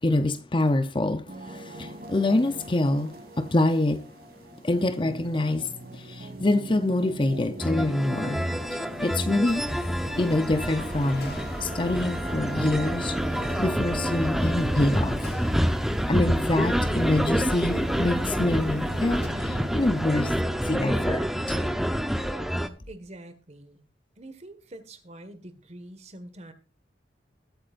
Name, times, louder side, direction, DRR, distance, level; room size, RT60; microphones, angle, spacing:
voice 1, 0.0-4.1 4.5-9.7 10.2-15.3 16.1-20.3 20.6-21.6, left 2 dB, 30° left, 0.8 m, -26 dB
sound 1, 1.3-20.4, right 1 dB, 60° right, 2.5 m, -42 dB
sound 2, 7.6-22.7, equal, ahead, 0.8 m, -28 dB
sound 3, 9.4-19.3, equal, 60° left, 2.8 m, -40 dB
voice 2, 22.9-23.8 24.2-26.5, right 1 dB, 40° right, 1.7 m, -45 dB
20.5 x 8.5 x 2.6 m
head